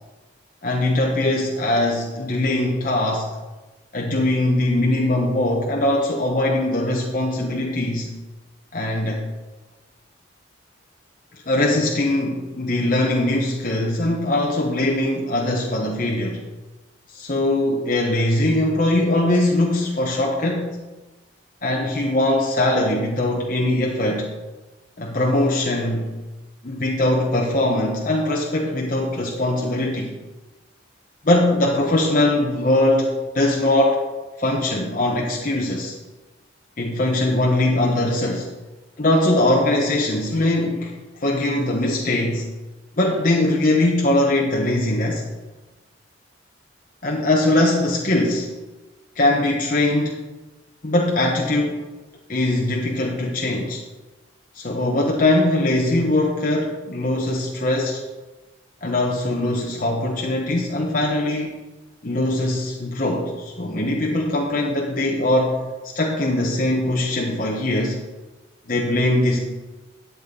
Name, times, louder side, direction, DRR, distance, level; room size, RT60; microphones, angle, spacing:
voice 1, 0.6-3.3 3.9-8.1 8.7-9.3 11.5-16.4 17.1-20.8 21.6-24.3 25.0-26.1 26.6-30.1 31.2-34.0 34.4-35.9 36.8-38.5 39.0-42.5 43.0-45.3 47.0-48.6 49.2-50.3 50.8-51.8 52.3-53.8 54.5-58.0 58.8-61.5 62.0-68.0 68.7-69.4, left 1 dB, 45° left, -1 dB, 0.9 m, -21 dB
12.0 x 8.5 x 3.8 m, 1.2 s
head